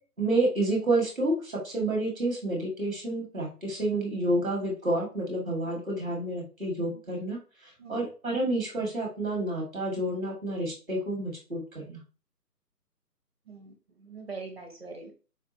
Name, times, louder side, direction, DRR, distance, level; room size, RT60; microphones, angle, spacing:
voice 1, 0.2-7.4 7.6-12.0, right 2 dB, 5° left, -4 dB, 0.8 m, -29 dB
voice 2, 13.5-15.1, right 4 dB, 40° right, 3 dB, 0.6 m, -43 dB
4.3 x 2.4 x 2.7 m, 0.35 s
figure-of-eight pair, 145°, 49 cm